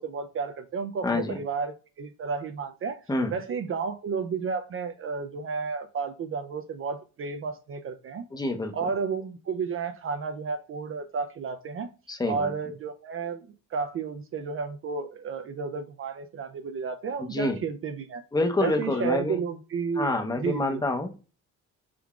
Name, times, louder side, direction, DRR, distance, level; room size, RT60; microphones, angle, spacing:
voice 1, 0.0-3.0 3.3-8.3 8.7-11.9 12.3-18.2 18.6-20.1 20.4-20.8, right 5 dB, 45° right, 8 dB, 0.4 m, -32 dB
voice 2, 1.0-1.4 3.1-3.4 8.3-8.9 12.1-12.5 17.2-17.6 18.3-19.4 19.9-21.1, left 2 dB, 15° left, 5 dB, 0.7 m, -27 dB
3.8 x 3.4 x 2.3 m, 0.34 s
cardioid pair, 90°, 30 cm